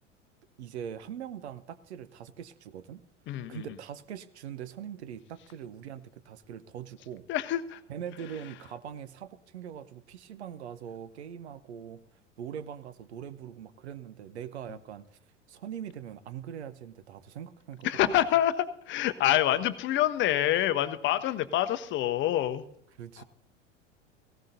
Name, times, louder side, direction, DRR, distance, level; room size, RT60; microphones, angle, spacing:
voice 1, 0.6-3.0 3.5-7.2 7.9-12.0 12.4-15.0 15.5-17.9 23.0-23.2, right 9 dB, 60° right, 15 dB, 0.9 m, -42 dB
voice 2, 3.3-3.6 7.3-7.8 17.8-22.6 23.2-23.3, left 12 dB, 30° left, 12 dB, 0.9 m, -26 dB
18.0 x 17.0 x 2.7 m, 0.71 s
figure-of-eight pair, 80°, 37 cm